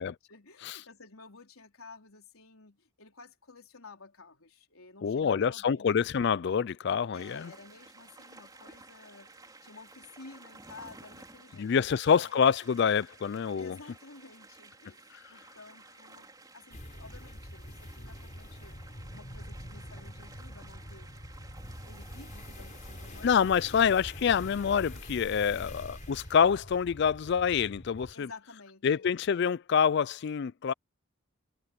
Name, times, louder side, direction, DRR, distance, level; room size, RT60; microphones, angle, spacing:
voice 1, 0.0-6.0 7.1-12.3 13.6-18.8 19.1-21.1 21.8-23.3 23.6-23.8 25.4-25.8 28.1-29.1, left 3 dB, 80° left, 4.1 m, -52 dB
voice 2, 5.0-7.5 11.6-13.7 23.2-28.3 28.8-30.7, left 7 dB, 50° left, 0.3 m, -26 dB
sound 1, 7.1-26.5, right 3 dB, 20° right, 3.7 m, -55 dB
sound 2, 16.7-28.1, left 1 dB, 35° left, 5.3 m, -45 dB
head